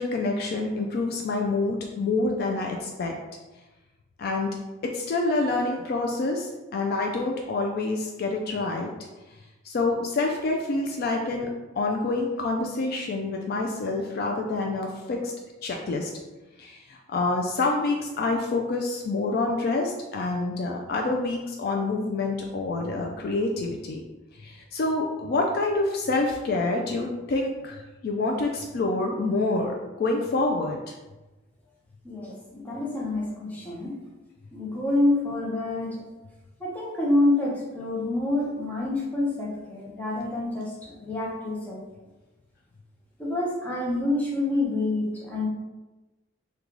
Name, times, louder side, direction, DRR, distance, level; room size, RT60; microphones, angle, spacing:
voice 1, 0.0-3.1 4.2-4.5 4.8-8.9 9.6-11.5 11.8-15.3 15.6-16.1 16.6-24.0 24.4-30.9, left 3 dB, 50° left, 1 dB, 0.3 m, -27 dB
voice 2, 32.0-34.0 34.5-36.0 36.6-41.8 43.2-45.5, left 2 dB, 10° left, -4 dB, 0.6 m, -27 dB
3.0 x 2.3 x 3.7 m, 1.1 s
head